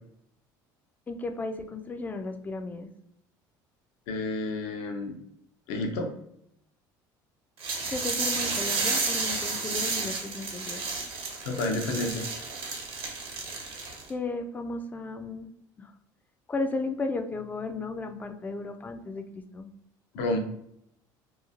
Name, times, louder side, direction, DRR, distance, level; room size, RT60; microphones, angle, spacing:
voice 1, 1.1-2.9 7.9-10.8 14.1-15.5 15.8-15.9 16.5-19.7, left 3 dB, 15° left, 6 dB, 0.3 m, -34 dB
voice 2, 4.1-5.2 5.7-6.1 11.4-12.3 20.1-20.4, left 2 dB, 80° left, 4 dB, 0.6 m, -30 dB
sound 1, 7.6-14.1, right 4 dB, 60° right, 0.9 m, -31 dB
2.9 x 2.3 x 2.4 m, 0.73 s
supercardioid pair, 80°, 10 cm